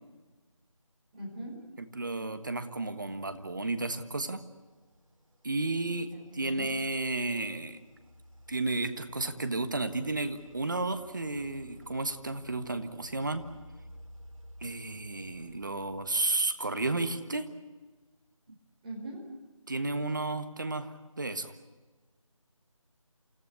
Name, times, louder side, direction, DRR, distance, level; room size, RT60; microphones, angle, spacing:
voice 1, 1.1-1.6 6.1-6.7 18.8-19.2, right 1 dB, 10° right, -4 dB, 4.4 m, -41 dB
voice 2, 1.8-4.4 5.4-7.8 8.5-13.4 14.6-17.5 19.7-21.5, right 2 dB, 35° right, 9 dB, 1.5 m, -32 dB
sound 1, 2.8-16.6, equal, 70° right, 3.5 m, -55 dB
28.5 x 16.0 x 9.7 m, 1.3 s
figure-of-eight pair, 170°, 18 cm